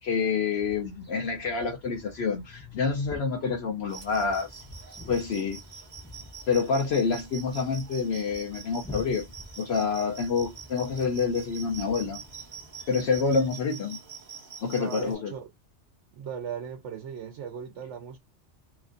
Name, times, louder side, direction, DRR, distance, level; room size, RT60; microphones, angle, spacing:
voice 1, 0.0-4.6 5.1-5.6 6.5-9.2 9.6-12.2 12.9-14.0 14.6-15.3, left 5 dB, 65° left, 0.8 m, -27 dB
sound 1, 0.6-13.5, left 2 dB, 10° left, 0.6 m, -48 dB
sound 2, 3.9-15.1, right 6 dB, 45° right, 0.8 m, -45 dB
voice 2, 14.7-15.5 16.1-18.2, right 7 dB, 85° right, 0.9 m, -38 dB
2.9 x 2.4 x 2.4 m
omnidirectional pair, 1.2 m